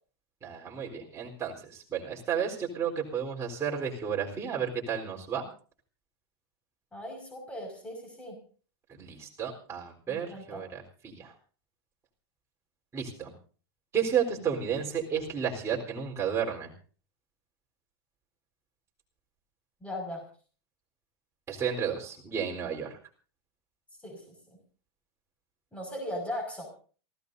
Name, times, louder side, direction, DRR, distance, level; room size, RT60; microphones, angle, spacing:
voice 1, 0.4-5.4 8.9-11.3 12.9-13.3 13.9-16.7 21.5-23.0, right 7 dB, 20° right, -1 dB, 4.0 m, -32 dB
voice 2, 6.9-8.4 10.1-10.6 19.8-20.2 24.0-24.2 24.5-24.6 25.7-26.7, left 1 dB, 10° left, 3 dB, 5.7 m, -38 dB
28.0 x 15.5 x 2.7 m, 0.40 s
supercardioid pair, 140°, 14 cm